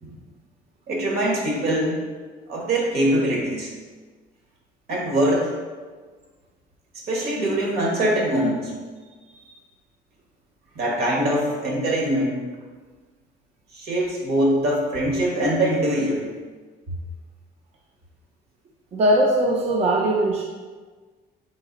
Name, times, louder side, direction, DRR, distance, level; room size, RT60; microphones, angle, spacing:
voice 1, 0.9-2.0 2.5-3.7 4.9-5.5 7.1-8.7 10.7-12.4 13.7-16.3, right 1 dB, 70° right, -3 dB, 1.4 m, -23 dB
voice 2, 18.9-20.4, right 1 dB, 40° right, -1 dB, 0.5 m, -20 dB
4.0 x 3.2 x 3.9 m, 1.4 s
cardioid pair, 110°, 17 cm